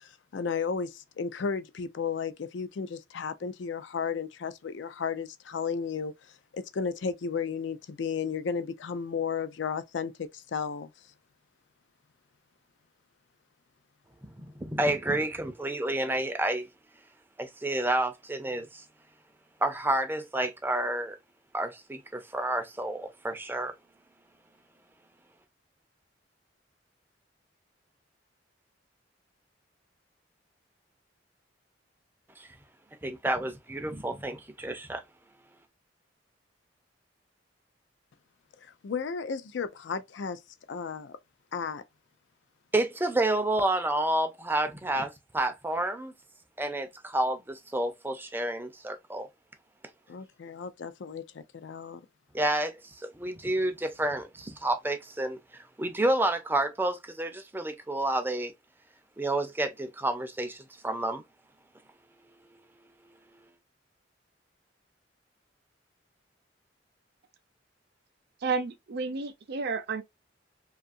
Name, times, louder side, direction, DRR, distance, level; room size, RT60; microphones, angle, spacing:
voice 1, 0.0-6.1 6.5-10.9 38.6-40.4 40.7-41.2 41.5-41.8 50.1-52.0, left 6 dB, 70° left, 0.4 m, -34 dB
voice 2, 14.2-16.7 17.4-18.8 19.6-21.2 21.5-23.7 32.4-32.5 33.0-35.0 42.7-46.1 46.6-49.3 52.3-58.5 59.2-61.2 62.5-62.6 63.0-63.4, right 1 dB, 10° right, 0.5 m, -30 dB
voice 3, 68.4-70.0, right 4 dB, 60° right, 0.5 m, -31 dB
2.6 x 2.4 x 2.5 m
head